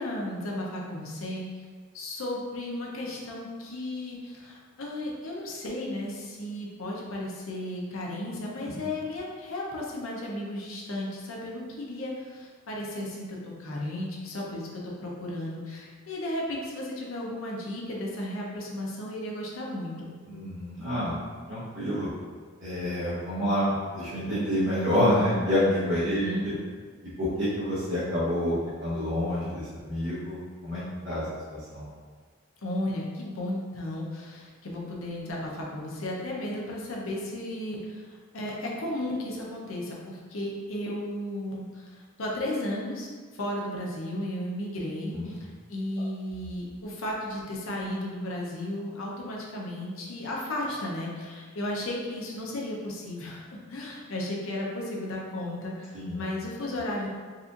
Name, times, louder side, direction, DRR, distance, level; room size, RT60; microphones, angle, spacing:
voice 1, 0.0-1.5 1.9-20.1 26.1-26.5 32.6-57.1, left 1 dB, 80° left, -3 dB, 0.7 m, -34 dB
voice 2, 20.3-21.2 21.5-22.1 22.6-26.5 27.2-31.2 31.5-31.9 45.1-45.3 55.9-56.2, equal, 70° right, -11 dB, 1.1 m, -28 dB
4.2 x 2.5 x 2.5 m, 1.5 s
head